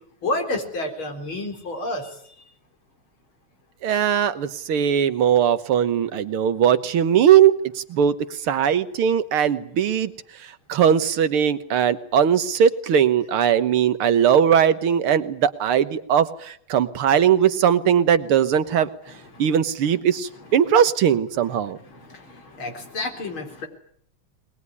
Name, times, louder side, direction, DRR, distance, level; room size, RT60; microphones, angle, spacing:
voice 1, 0.2-2.2 19.1-19.6 20.5-20.6 21.4-23.7, left 2 dB, 70° left, 5 dB, 4.7 m, -31 dB
voice 2, 3.8-8.1 8.5-10.1 10.7-18.9 19.4-21.8, right 9 dB, 80° right, 12 dB, 2.1 m, -19 dB
22.0 x 20.0 x 9.7 m, 0.65 s
omnidirectional pair, 2.4 m